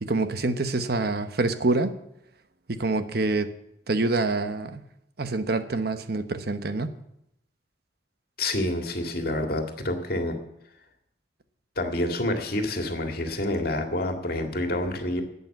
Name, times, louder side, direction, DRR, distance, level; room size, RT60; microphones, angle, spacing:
voice 1, 0.0-1.9 2.7-3.5 3.9-4.8 5.2-6.9, right 2 dB, 60° right, 10 dB, 1.0 m, -26 dB
voice 2, 8.4-10.4 11.8-15.2, left 1 dB, 55° left, 5 dB, 2.0 m, -28 dB
12.0 x 8.4 x 9.1 m, 0.79 s
head